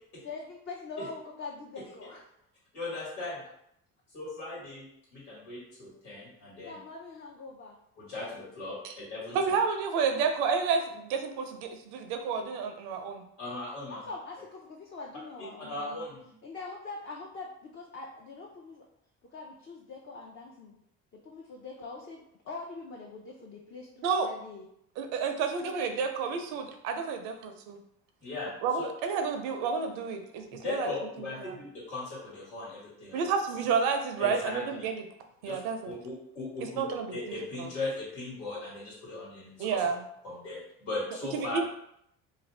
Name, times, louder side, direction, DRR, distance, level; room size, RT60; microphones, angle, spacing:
voice 1, 0.2-2.2 6.6-7.8 13.9-16.1 16.4-18.8 19.3-20.8 21.1-24.7, left 3 dB, 35° left, -2 dB, 0.5 m, -43 dB
voice 2, 2.7-3.4 4.1-4.9 5.1-6.8 8.0-9.4 13.4-14.1 15.7-16.3 28.2-28.5 28.8-28.9 30.6-33.3 34.2-34.6 35.4-35.6 35.8-39.8 40.2-41.6, left 2 dB, 85° left, -6 dB, 1.5 m, -38 dB
voice 3, 9.3-13.2 24.0-24.3 25.0-27.8 28.6-30.9 31.4-31.6 33.1-35.0 35.4-35.9 36.8-37.7 39.6-40.0 41.3-41.6, right 5 dB, 80° right, 5 dB, 0.5 m, -30 dB
2.5 x 2.2 x 3.2 m, 0.74 s
supercardioid pair, 65°, 37 cm